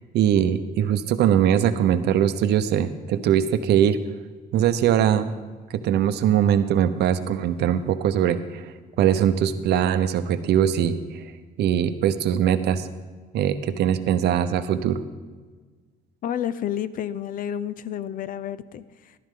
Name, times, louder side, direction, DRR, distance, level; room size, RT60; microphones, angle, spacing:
voice 1, 0.1-4.0 4.5-5.3 5.7-8.7 9.0-11.2 11.6-12.9 13.3-15.0, right 9 dB, 75° right, 11 dB, 0.8 m, -21 dB
voice 2, 16.2-19.2, left 10 dB, 55° left, 16 dB, 0.5 m, -30 dB
14.0 x 12.0 x 3.7 m, 1.4 s
cardioid pair, 135°, 17 cm